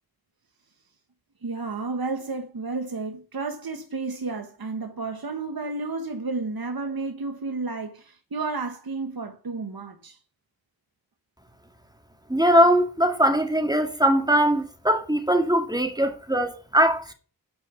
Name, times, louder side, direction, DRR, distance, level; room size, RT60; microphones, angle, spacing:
voice 1, 1.4-10.2, right 3 dB, 70° right, 1.5 m, -32 dB
voice 2, 12.3-17.1, equal, 10° right, 2.2 m, -21 dB
10.5 x 5.3 x 8.1 m
wide cardioid pair, 50°, 38 cm